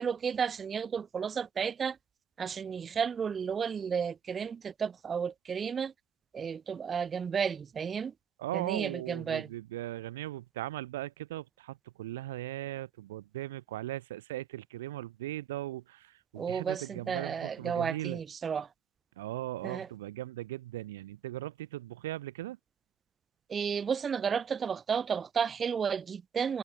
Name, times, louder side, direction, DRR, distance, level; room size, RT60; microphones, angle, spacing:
voice 1, 0.0-2.0 2.4-5.9 6.3-8.1 8.5-9.5 16.4-18.7 19.6-19.9 23.5-26.6, right 6 dB, 35° right, 0.8 m, -32 dB
voice 2, 8.4-18.2 19.2-22.6, right 15 dB, 75° right, 3.7 m, -38 dB
figure-of-eight pair, 60°, 0 cm